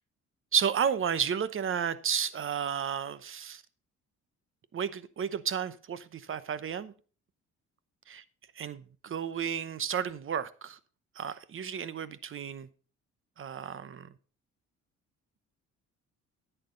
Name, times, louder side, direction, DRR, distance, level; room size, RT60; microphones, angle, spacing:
voice 1, 0.5-3.6 4.7-6.9 8.1-8.2 8.6-10.8 11.2-12.7 13.4-14.1, right 8 dB, 45° right, 0.8 m, -32 dB
10.5 x 9.1 x 3.8 m
cardioid pair, 90°, 30 cm